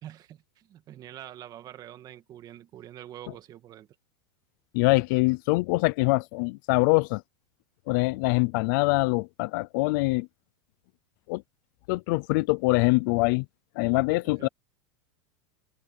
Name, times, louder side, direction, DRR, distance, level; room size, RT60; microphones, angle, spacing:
voice 1, 0.0-3.9 14.1-14.5, right 12 dB, 25° right, 2.0 m, -45 dB
voice 2, 4.7-7.2 7.9-10.3 11.3-11.4 11.9-13.4 13.8-14.5, left 25 dB, 45° left, 0.6 m, -24 dB
open air
supercardioid pair, 160°, 14 cm